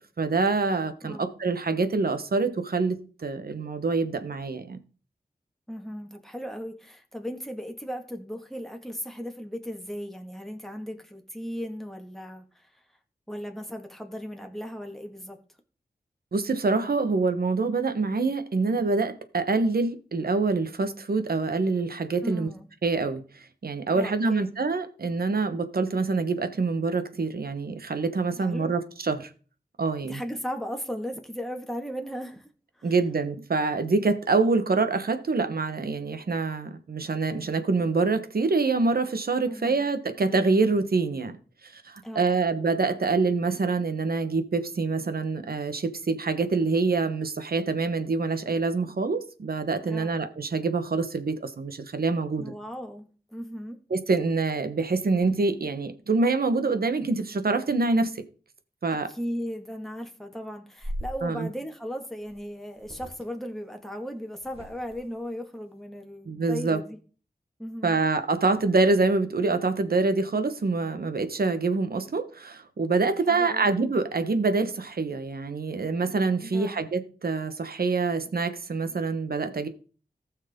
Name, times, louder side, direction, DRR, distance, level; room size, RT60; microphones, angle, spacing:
voice 1, 0.2-4.8 16.3-22.5 22.8-29.3 29.8-30.2 32.8-41.4 41.6-52.5 53.9-58.2 58.8-59.1 61.2-61.5 66.2-66.8 67.8-79.7, right 3 dB, 70° right, 1.4 m, -26 dB
voice 2, 1.0-1.3 5.7-12.7 13.3-15.4 22.2-22.7 24.0-24.5 28.4-28.7 30.0-32.5 32.8-32.9 39.4-39.8 42.0-42.3 49.9-50.2 52.4-53.8 59.1-67.0 67.6-68.0 73.3-73.7 76.5-76.8, equal, ahead, 2.0 m, -36 dB
sound 1, 60.8-61.2 62.3-62.4 62.7-63.2 64.4-65.1, equal, 40° right, 3.0 m, -38 dB
18.5 x 6.4 x 3.7 m
wide cardioid pair, 85°, 16 cm